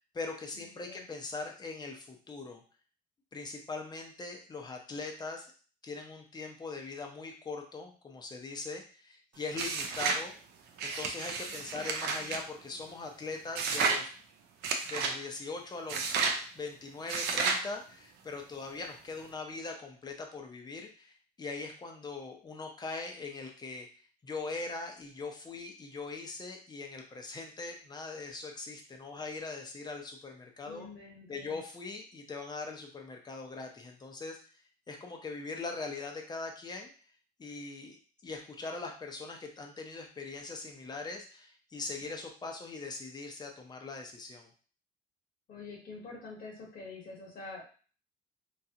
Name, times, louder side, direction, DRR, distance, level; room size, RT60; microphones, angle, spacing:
voice 1, 0.0-2.6 3.3-5.5 5.8-10.3 10.8-14.1 14.9-16.0 16.5-23.9 24.2-30.9 31.3-34.4 34.9-36.9 37.4-44.5, left 3 dB, 25° left, 2 dB, 0.7 m, -41 dB
voice 2, 0.5-1.0 11.5-12.4 30.7-31.6 45.5-47.6, left 3 dB, 60° left, -2 dB, 1.0 m, -47 dB
sound 1, 9.5-10.2 10.8-12.4 13.5-14.0 14.6-15.2 15.9-16.4 17.1-17.6, right 5 dB, 80° right, 0.5 m, -31 dB
3.0 x 2.4 x 2.8 m, 0.39 s
cardioid pair, 110°, 17 cm